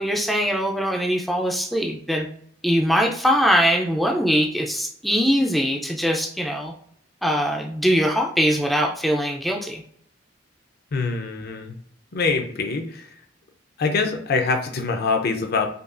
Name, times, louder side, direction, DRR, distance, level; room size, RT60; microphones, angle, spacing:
voice 1, 0.0-2.3 2.6-6.7 7.2-9.8, equal, ahead, 1 dB, 0.4 m, -22 dB
voice 2, 10.9-11.7 12.1-13.1 13.8-15.7, left 4 dB, 55° left, 5 dB, 0.6 m, -24 dB
5.3 x 2.3 x 2.5 m, 0.63 s
head